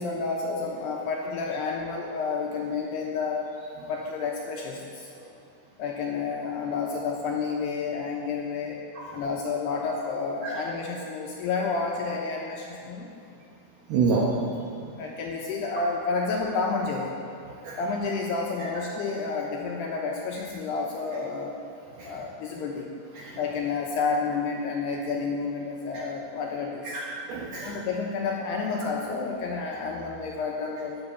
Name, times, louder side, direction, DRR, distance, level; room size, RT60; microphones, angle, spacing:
voice 1, 0.0-3.5 3.9-5.1 5.8-8.8 9.1-13.1 14.9-17.1 17.8-21.6 22.0-22.9 23.4-27.0 27.6-31.0, left 4 dB, 75° left, -2 dB, 2.7 m, -30 dB
voice 2, 13.9-14.3 14.8-14.9 17.6-17.8 22.0-22.1 23.2-23.4 25.9-26.0 26.9-27.7, right 5 dB, 75° right, -3 dB, 2.4 m, -28 dB
12.5 x 9.2 x 7.0 m, 2.5 s
omnidirectional pair, 5.7 m